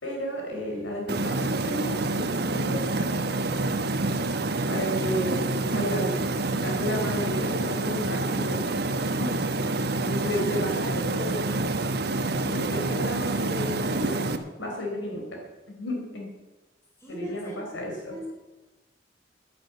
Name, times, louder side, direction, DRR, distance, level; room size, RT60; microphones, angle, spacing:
voice 1, 0.0-3.4 4.7-8.7 9.2-9.3 10.0-11.5 12.4-14.2 14.6-15.4 15.8-16.3 17.1-18.1, equal, 80° left, 0 dB, 4.3 m, -32 dB
sound 1, 1.1-14.4, right 2 dB, 55° right, 1.1 m, -27 dB
voice 2, 17.0-18.3, left 1 dB, 15° left, -3 dB, 5.1 m, -42 dB
11.0 x 10.5 x 8.1 m, 1.1 s
head